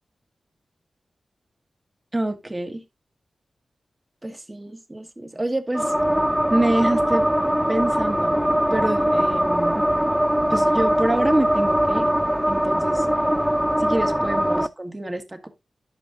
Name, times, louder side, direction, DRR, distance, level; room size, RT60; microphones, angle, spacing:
voice 1, 2.1-2.8 4.2-5.9 6.5-7.3 7.7-8.4 8.7-9.8 10.5-12.1 12.5-13.1 13.8-15.5, right 1 dB, 20° right, 1.8 m, -26 dB
sound 1, 5.7-14.7, equal, 5° right, 0.5 m, -21 dB
11.0 x 6.3 x 2.6 m
wide cardioid pair, 75°, 0 cm